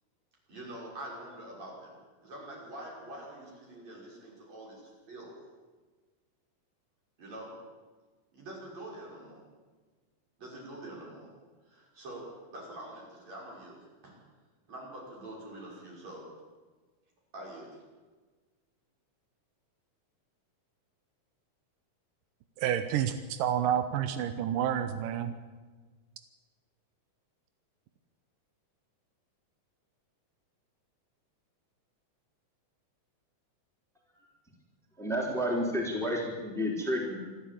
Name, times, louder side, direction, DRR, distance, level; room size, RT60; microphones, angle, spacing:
voice 1, 0.5-5.4 7.2-7.6 8.3-9.4 10.4-11.3 11.7-14.2 14.7-16.3 17.3-17.8, right 1 dB, 55° right, -3 dB, 7.3 m, -45 dB
voice 2, 22.6-25.3, right 9 dB, 85° right, 9 dB, 2.5 m, -29 dB
voice 3, 35.0-37.3, equal, ahead, -1 dB, 3.4 m, -31 dB
26.5 x 12.5 x 8.7 m, 1.4 s
omnidirectional pair, 3.8 m